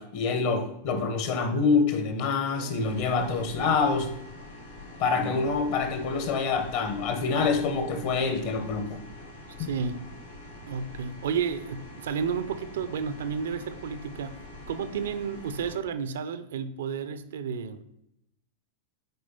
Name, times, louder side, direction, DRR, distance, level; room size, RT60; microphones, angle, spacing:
voice 1, 0.0-4.1 5.0-9.0 9.6-9.7, left 4 dB, 50° left, 1.3 m, -26 dB
voice 2, 2.6-2.9 9.6-10.0 10.7-14.4 14.7-17.8, right 6 dB, 60° right, 0.6 m, -32 dB
sound 1, 2.8-15.8, left 2 dB, 80° left, 2.0 m, -45 dB
9.2 x 4.8 x 4.1 m
figure-of-eight pair, 90°, 0 cm